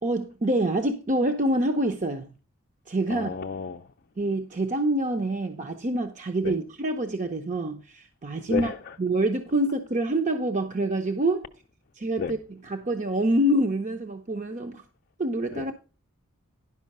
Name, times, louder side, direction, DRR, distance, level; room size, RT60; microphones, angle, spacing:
voice 1, 0.0-2.3 2.9-3.4 4.2-8.7 9.0-11.5 12.0-14.8 15.2-15.7, right 1 dB, 35° right, 0.8 m, -26 dB
voice 2, 3.1-3.8 6.4-6.5 8.5-8.8 12.2-12.3 15.5-15.7, left 5 dB, 45° left, 0.5 m, -31 dB
11.0 x 5.6 x 5.4 m
head